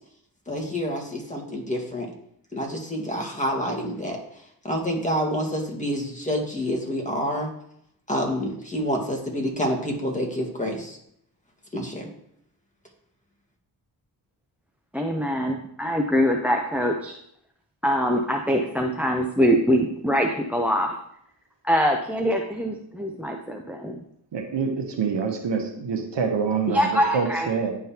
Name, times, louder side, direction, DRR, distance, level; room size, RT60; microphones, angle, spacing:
voice 1, 0.5-2.1 2.5-4.2 4.6-7.5 8.1-11.0 11.7-12.1, equal, 15° left, 0 dB, 1.7 m, -28 dB
voice 2, 14.9-17.2 17.8-21.0 21.6-24.0 26.7-27.5, equal, 5° right, 3 dB, 0.6 m, -23 dB
voice 3, 24.3-27.7, right 5 dB, 65° right, 4 dB, 1.1 m, -26 dB
10.5 x 3.7 x 2.9 m, 0.71 s
cardioid pair, 45°, 45 cm